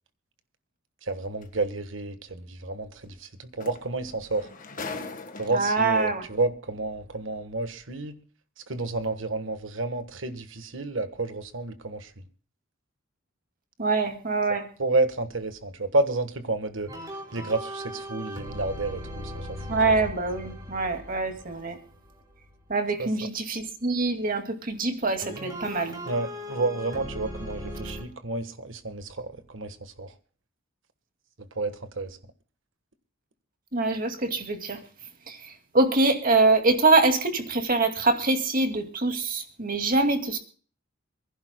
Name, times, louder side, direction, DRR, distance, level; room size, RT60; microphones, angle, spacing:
voice 1, 1.1-4.5 5.4-8.2 8.7-12.1 14.8-16.9 17.3-19.5 23.0-23.1 26.1-30.1 31.6-32.2, right 2 dB, 65° right, 1.4 m, -30 dB
sound 1, 1.4-1.6 3.2-3.3 3.6-5.8 6.8-6.9, left 4 dB, 40° left, 1.5 m, -39 dB
voice 2, 5.5-6.3 13.8-14.6 19.7-21.8 22.7-26.0 33.7-34.8 35.3-40.4, right 3 dB, 45° right, 2.3 m, -24 dB
sound 2, 16.9-22.6 25.2-28.0, equal, 20° right, 4.2 m, -38 dB
27.5 x 11.0 x 2.2 m
head